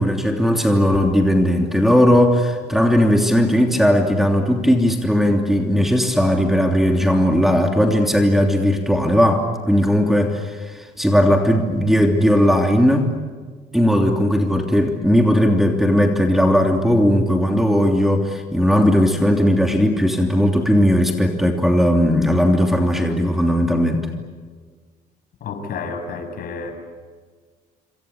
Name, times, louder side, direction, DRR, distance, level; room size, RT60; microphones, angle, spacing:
voice 1, 0.0-13.1 13.7-24.1, equal, ahead, 3 dB, 3.1 m, -17 dB
voice 2, 25.4-26.7, left 4 dB, 60° left, 6 dB, 6.9 m, -30 dB
27.5 x 25.0 x 8.4 m, 1.5 s
cardioid pair, 110°, 17 cm